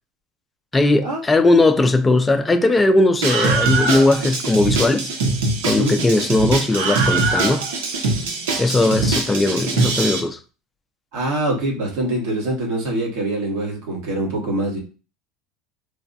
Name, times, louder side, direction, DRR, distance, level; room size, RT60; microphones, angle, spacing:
voice 1, 0.7-5.1 5.6-7.7 8.6-10.4, left 2 dB, 15° left, 0.3 m, -18 dB
Screaming, 3.2-10.2, right 3 dB, 90° right, 0.7 m, -22 dB
voice 2, 11.1-14.8, right 1 dB, 65° right, 1.4 m, -24 dB
3.2 x 2.1 x 2.6 m
supercardioid pair, 130°, 0 cm